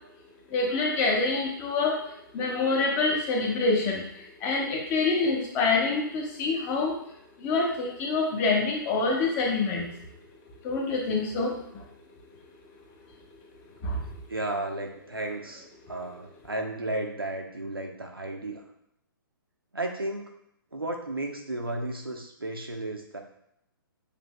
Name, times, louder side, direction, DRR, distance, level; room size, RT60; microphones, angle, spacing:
voice 1, 0.5-6.9 7.4-10.0 10.6-11.8 13.8-14.0, left 3 dB, 20° left, 0 dB, 0.7 m, -26 dB
voice 2, 14.3-18.6 19.7-20.3 20.7-23.2, right 2 dB, 80° right, 2 dB, 0.8 m, -33 dB
6.7 x 2.6 x 2.2 m, 0.76 s
figure-of-eight pair, 125°, 12 cm